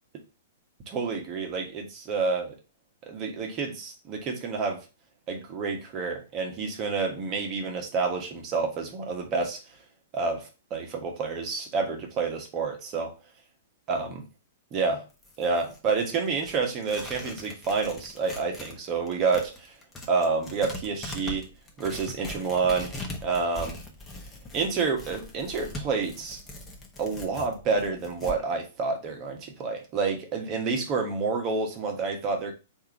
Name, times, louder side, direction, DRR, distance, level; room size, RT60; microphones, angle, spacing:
voice 1, 0.9-2.5 3.1-4.8 5.3-9.8 10.1-13.2 13.9-14.2 14.7-15.0 15.4-19.7 20.1-21.5 21.8-22.9 23.2-23.8 24.5-26.4 27.0-32.5, right 4 dB, 35° right, 3 dB, 1.2 m, -29 dB
Tearing, 15.1-18.8 19.1-28.4, left 2 dB, 15° left, 1.0 m, -41 dB
3.6 x 2.7 x 4.6 m, 0.29 s
hypercardioid pair, 115°, 0 cm